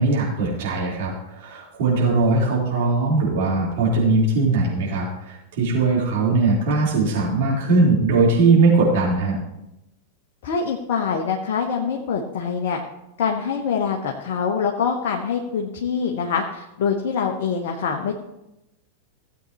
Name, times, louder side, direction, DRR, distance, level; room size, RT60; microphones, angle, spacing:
voice 1, 0.0-9.4, right 3 dB, 55° right, -5 dB, 4.0 m, -20 dB
voice 2, 10.4-12.8 13.2-18.1, left 6 dB, 55° left, 1 dB, 1.0 m, -24 dB
16.5 x 8.1 x 3.1 m, 0.90 s
figure-of-eight pair, 90°, 0 cm